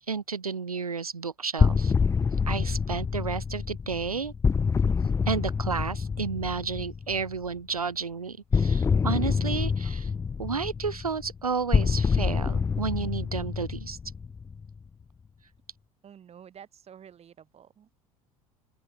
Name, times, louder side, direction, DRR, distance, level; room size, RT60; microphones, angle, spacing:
voice 1, 0.0-1.9 2.5-4.3 5.3-10.1 10.4-14.0, right 5 dB, 90° right, 1.1 m, -32 dB
sound 1, 1.6-7.3 8.5-14.8, left 5 dB, 15° left, 0.5 m, -26 dB
voice 2, 16.0-18.0, right 8 dB, 35° right, 4.8 m, -50 dB
open air
figure-of-eight pair, 70°, 18 cm